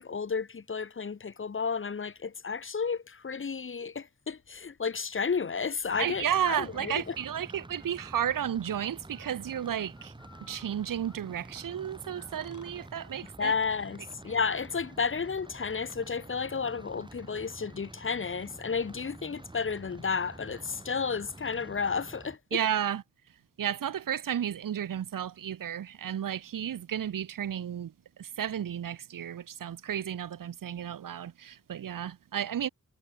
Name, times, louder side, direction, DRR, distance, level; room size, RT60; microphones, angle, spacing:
voice 1, 0.0-7.1 13.4-22.6, left 5 dB, 40° left, 0.7 m, -32 dB
sound 1, 4.3-16.0, left 5 dB, 60° left, 2.0 m, -62 dB
sound 2, 5.9-22.4, right 2 dB, 15° right, 1.0 m, -49 dB
voice 2, 6.0-10.1 10.4-13.5 22.5-23.0 23.6-27.9 28.2-32.7, right 9 dB, 80° right, 0.6 m, -33 dB
wide cardioid pair, 105°, 32 cm